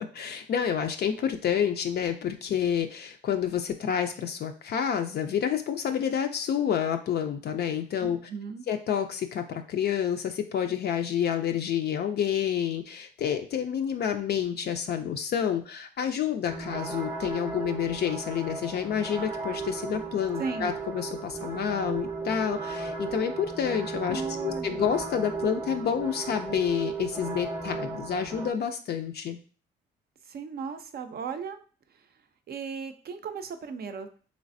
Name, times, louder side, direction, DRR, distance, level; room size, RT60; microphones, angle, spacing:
voice 1, 0.0-8.2 8.7-29.4, left 8 dB, 55° left, 6 dB, 0.4 m, -29 dB
voice 2, 8.0-8.7 20.4-20.7 24.1-24.8 30.3-31.6 32.5-34.1, right 5 dB, 50° right, 8 dB, 0.5 m, -36 dB
sound 1, 16.5-28.5, right 4 dB, 10° right, 0.6 m, -35 dB
3.3 x 3.1 x 2.6 m, 0.39 s
cardioid pair, 90°, 20 cm